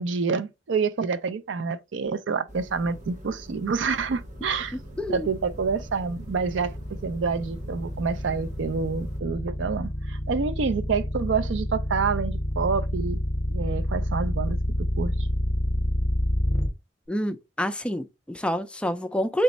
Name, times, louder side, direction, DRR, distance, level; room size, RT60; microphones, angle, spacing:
voice 1, 0.0-4.8 5.1-6.7 7.0-13.2 13.5-14.6 15.0-15.3, right 5 dB, 75° right, 0.5 m, -27 dB
sound 1, 2.5-9.2, equal, 40° right, 0.9 m, -44 dB
sound 2, 3.4-16.7, equal, 40° left, 0.7 m, -28 dB
voice 2, 4.7-5.3 17.1-19.4, equal, 5° left, 0.3 m, -27 dB
3.4 x 3.1 x 3.9 m
head